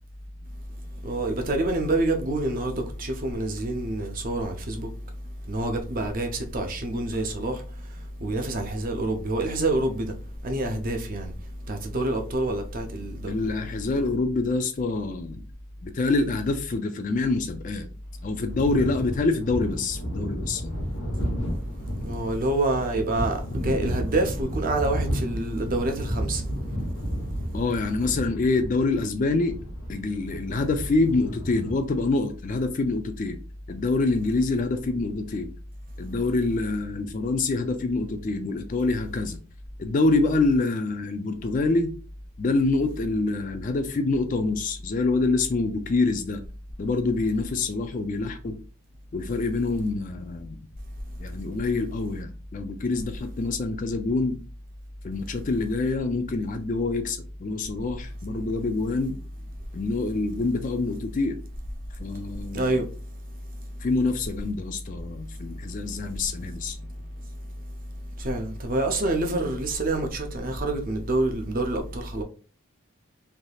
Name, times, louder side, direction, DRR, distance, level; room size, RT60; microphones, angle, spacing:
voice 1, 1.0-4.9 5.5-7.6 8.2-10.1 10.4-11.3 11.7-13.3 22.0-26.4 62.5-62.9 68.2-72.2, right 2 dB, 40° right, 0.5 m, -27 dB
voice 2, 13.3-15.4 15.8-17.9 18.2-20.8 27.5-29.6 29.9-33.4 33.7-35.5 36.0-39.4 39.8-41.9 42.4-46.4 46.8-48.6 49.1-50.6 51.2-54.4 55.0-59.2 59.7-61.4 62.0-62.8 63.8-66.9, left 3 dB, 35° left, 0.3 m, -26 dB
sound 1, 18.4-31.7, equal, 65° left, 1.0 m, -32 dB
3.3 x 2.7 x 2.3 m
head